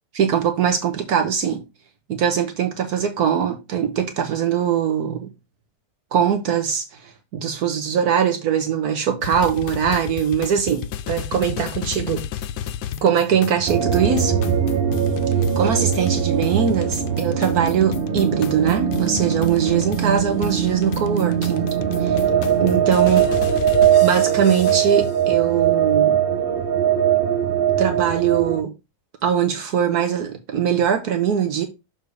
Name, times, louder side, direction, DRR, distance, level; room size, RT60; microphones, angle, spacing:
voice 1, 0.1-1.6 2.1-5.3 6.1-12.2 13.0-14.4 15.6-21.7 22.0-22.2 22.6-23.3 24.0-26.2 27.8-28.7 29.2-31.7, right 8 dB, 70° right, 1.4 m, -21 dB
sound 1, 9.2-25.1, left 10 dB, 90° left, 1.2 m, -33 dB
sound 2, 13.7-28.6, right 9 dB, 55° right, 0.6 m, -21 dB
6.6 x 4.2 x 4.7 m
omnidirectional pair, 1.7 m